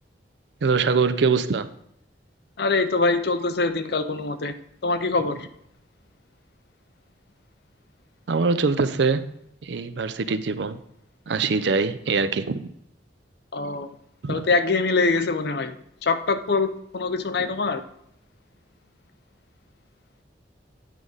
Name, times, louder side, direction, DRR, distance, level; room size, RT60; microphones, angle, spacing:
voice 1, 0.6-1.7 8.3-9.2 9.6-10.8 11.3-12.7 14.2-14.4, right 4 dB, 70° right, 12 dB, 0.5 m, -23 dB
voice 2, 2.6-4.5 4.8-5.5 13.5-13.9 14.3-15.8 16.0-17.8, left 3 dB, 60° left, 9 dB, 0.6 m, -24 dB
9.2 x 4.9 x 3.9 m, 0.74 s
head